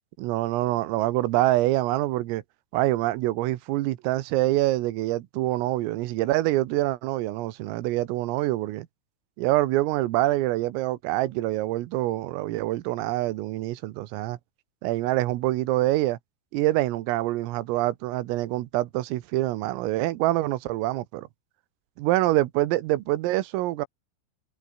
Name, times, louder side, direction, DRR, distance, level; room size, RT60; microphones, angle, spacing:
voice 1, 0.2-2.4 2.7-8.9 9.4-14.4 14.8-16.2 16.5-21.3 22.0-23.9, right 17 dB, 90° right, 3.9 m, -25 dB
omnidirectional pair, 5.8 m